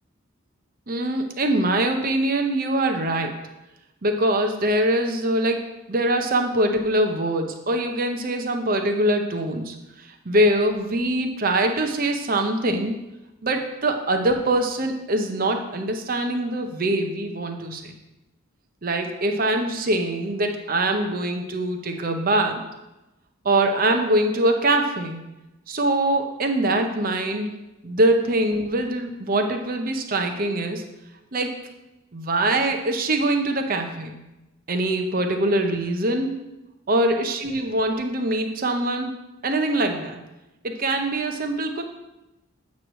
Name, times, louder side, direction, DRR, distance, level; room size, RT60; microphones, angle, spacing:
voice 1, 0.9-3.4 4.0-13.0 13.4-17.9 18.8-22.6 23.4-25.2 25.7-27.5 27.8-30.8 31.3-31.6 32.1-34.2 34.7-36.5 36.9-39.1 39.4-40.2 40.6-41.8, right 1 dB, 40° right, 4 dB, 0.7 m, -23 dB
8.3 x 3.1 x 6.2 m, 0.98 s
head